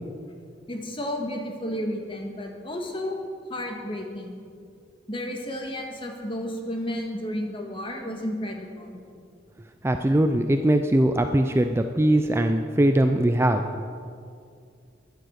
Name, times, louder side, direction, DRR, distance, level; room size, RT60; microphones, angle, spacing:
voice 1, 0.7-3.2 3.5-4.4 5.1-8.9, left 1 dB, 30° left, 2 dB, 1.7 m, -32 dB
voice 2, 9.8-13.8, right 1 dB, 15° right, 7 dB, 0.4 m, -21 dB
14.0 x 10.5 x 6.5 m, 2.3 s
head